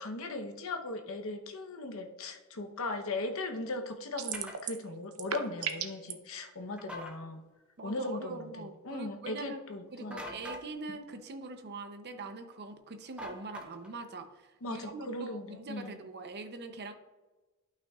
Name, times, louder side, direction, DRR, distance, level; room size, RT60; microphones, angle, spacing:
voice 1, 0.0-7.4 7.8-10.2 10.9-11.0 14.6-16.0, left 2 dB, 70° left, 5 dB, 0.9 m, -38 dB
sound 1, 4.2-4.8 5.1-6.1, right 8 dB, 85° right, 0.7 m, -35 dB
sound 2, 4.3-4.6 6.8-7.2 10.1-10.7 13.2-14.0, equal, 5° right, 0.7 m, -43 dB
voice 2, 7.8-9.6 9.9-16.9, right 3 dB, 50° right, 7 dB, 0.7 m, -43 dB
12.0 x 5.8 x 2.4 m, 1.2 s
head